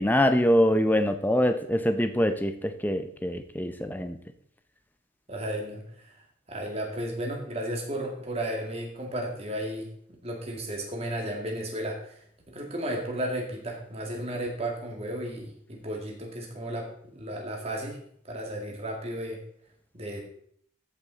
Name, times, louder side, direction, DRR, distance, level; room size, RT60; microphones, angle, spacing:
voice 1, 0.0-4.2, equal, 10° left, 9 dB, 0.6 m, -24 dB
voice 2, 5.3-6.2 6.5-9.9 10.2-18.0 18.2-19.4 19.9-20.2, right 1 dB, 30° right, 0 dB, 2.1 m, -34 dB
13.5 x 5.9 x 4.0 m, 0.63 s
head